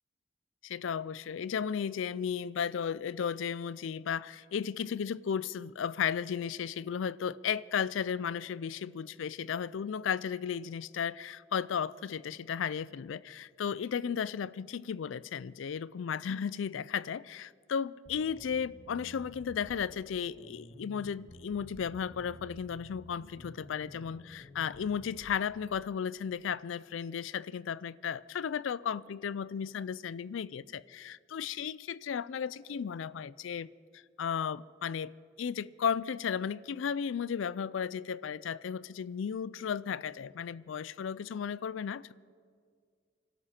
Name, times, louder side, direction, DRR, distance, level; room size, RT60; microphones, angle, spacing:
voice 1, 0.6-33.7 33.9-35.1 35.4-42.1, left 7 dB, 80° left, 0.4 m, -34 dB
sound 1, 18.1-25.4, left 1 dB, 45° left, 1.6 m, -52 dB
25.5 x 12.5 x 4.3 m
head